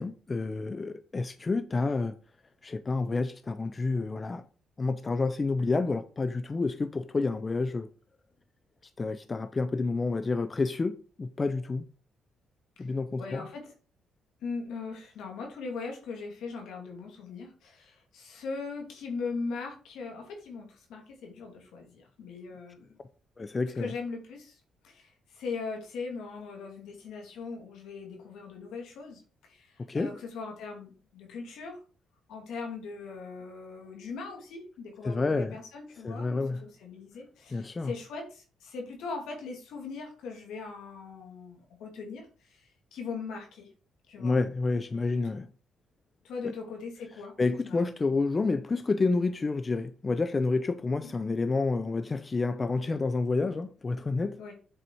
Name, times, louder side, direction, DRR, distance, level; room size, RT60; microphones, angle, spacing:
voice 1, 0.0-2.2 2.6-4.4 4.8-7.9 9.0-11.9 12.8-13.5 23.4-23.9 29.9-30.1 35.0-35.6 36.0-36.6 37.5-37.9 44.2-45.5 46.4-46.5 47.4-54.4, left 3 dB, 30° left, 0.5 m, -29 dB
voice 2, 13.2-13.7 14.4-23.0 23.7-31.8 32.3-43.7 44.1-44.4 45.2-45.4 46.2-47.3 47.6-47.8 48.1-48.2 51.0-51.1 54.4-54.5, left 4 dB, 80° left, 2.4 m, -40 dB
7.8 x 4.1 x 4.6 m
cardioid pair, 90°, 0 cm